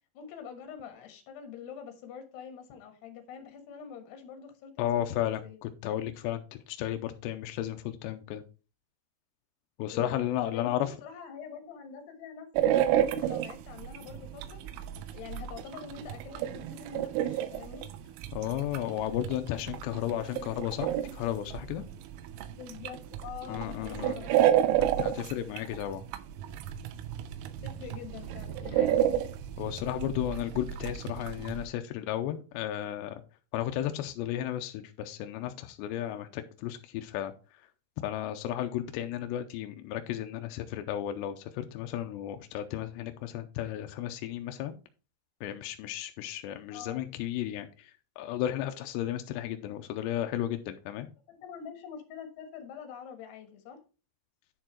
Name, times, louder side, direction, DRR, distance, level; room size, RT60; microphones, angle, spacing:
voice 1, 0.1-5.6 9.9-14.6 15.1-17.9 22.5-24.8 27.6-29.0 46.7-47.1 49.6-49.8 51.3-53.8, left 7 dB, 65° left, 3.2 m, -45 dB
voice 2, 4.8-8.4 9.8-10.9 18.3-21.8 23.5-24.2 25.0-26.0 28.6-28.8 29.6-33.2 33.5-37.3 38.0-44.8 45.4-47.9 48.2-51.1, left 12 dB, 85° left, 2.5 m, -34 dB
sound 1, 12.6-31.6, right 11 dB, 90° right, 3.2 m, -31 dB
10.0 x 4.5 x 4.4 m
omnidirectional pair, 5.6 m